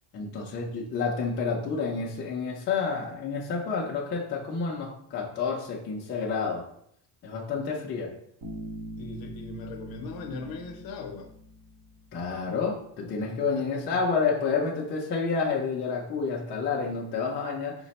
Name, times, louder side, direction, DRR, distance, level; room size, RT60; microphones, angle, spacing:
voice 1, 0.1-6.6 7.2-8.1 12.1-17.7, left 5 dB, 25° left, -3 dB, 0.3 m, -29 dB
Bass guitar, 8.4-12.1, right 1 dB, 45° right, 0.8 m, -42 dB
voice 2, 9.0-11.3 13.3-14.0, left 3 dB, 45° left, 4 dB, 0.7 m, -39 dB
5.0 x 2.1 x 4.0 m, 0.70 s
cardioid pair, 155°, 50 cm